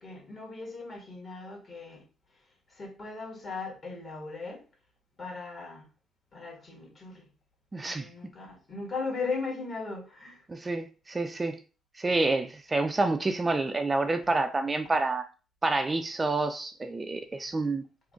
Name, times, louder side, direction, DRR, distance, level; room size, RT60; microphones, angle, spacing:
voice 1, 0.0-2.0 2.7-4.6 5.2-5.9 6.3-7.3 7.9-10.4 14.2-14.3 17.4-17.5, left 4 dB, 40° left, 1.6 m, -38 dB
voice 2, 7.7-8.1 10.5-11.6 12.0-15.3 15.6-17.8, right 2 dB, 25° right, 0.4 m, -28 dB
3.7 x 2.1 x 3.6 m
supercardioid pair, 75°, 0 cm